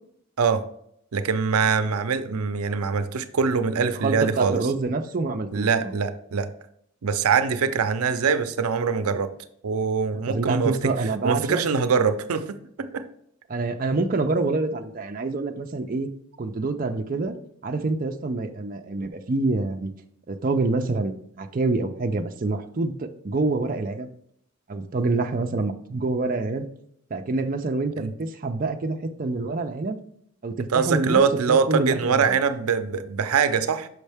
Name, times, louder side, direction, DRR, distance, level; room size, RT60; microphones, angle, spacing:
voice 1, 1.1-4.7 5.5-6.5 7.0-9.3 9.6-10.9 11.2-13.0 28.0-28.1 30.7-33.9, right 5 dB, 90° right, 11 dB, 0.5 m, -23 dB
voice 2, 3.8-5.9 10.3-11.6 13.5-16.1 16.4-17.3 17.6-19.9 20.3-24.1 24.7-26.7 27.1-30.0 30.4-31.2 31.5-32.4, right 3 dB, 40° right, 5 dB, 0.4 m, -26 dB
6.4 x 5.3 x 3.4 m, 0.69 s
head